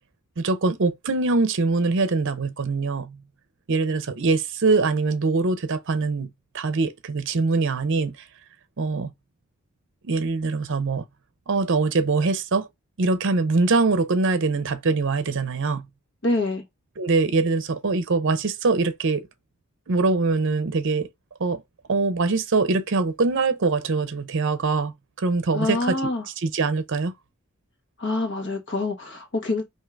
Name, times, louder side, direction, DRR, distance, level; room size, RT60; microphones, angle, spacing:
voice 1, 0.4-3.2 3.7-6.3 6.5-8.2 8.8-9.1 10.0-11.0 11.5-12.7 13.0-15.9 17.0-19.3 19.9-21.1 21.4-21.6 21.9-26.0 26.4-27.1, right 3 dB, 60° right, 0.6 m, -23 dB
voice 2, 16.2-16.6 25.5-26.2 28.0-29.6, left 2 dB, 55° left, 1.3 m, -26 dB
3.7 x 2.8 x 4.4 m
head